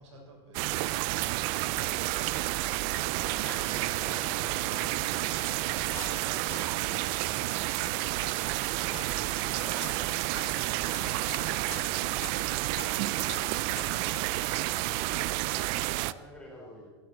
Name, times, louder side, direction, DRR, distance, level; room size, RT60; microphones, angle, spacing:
voice 1, 0.0-2.0 3.3-8.1, right 2 dB, 85° right, -1 dB, 6.7 m, -51 dB
sound 1, 0.5-16.1, right 18 dB, 35° right, 0.4 m, -30 dB
voice 2, 1.6-2.3 3.6-3.9 15.8-16.9, equal, 5° left, -3 dB, 4.1 m, -50 dB
sound 2, 3.4-14.5, left 7 dB, 70° left, 3.3 m, -48 dB
17.0 x 16.5 x 4.5 m, 1.4 s
supercardioid pair, 160°, 14 cm